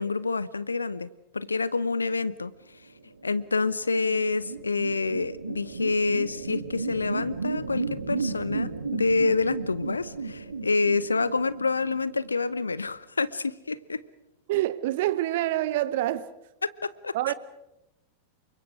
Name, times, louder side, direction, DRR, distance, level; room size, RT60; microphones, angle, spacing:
voice 1, 0.0-2.5 3.2-14.0 16.6-17.1, left 4 dB, 80° left, 0.9 m, -27 dB
sound 1, 3.0-12.7, right 4 dB, 75° right, 1.9 m, -35 dB
voice 2, 14.5-16.3 17.1-17.3, right 15 dB, 50° right, 1.2 m, -26 dB
28.5 x 25.0 x 4.9 m
figure-of-eight pair, 90°, 0 cm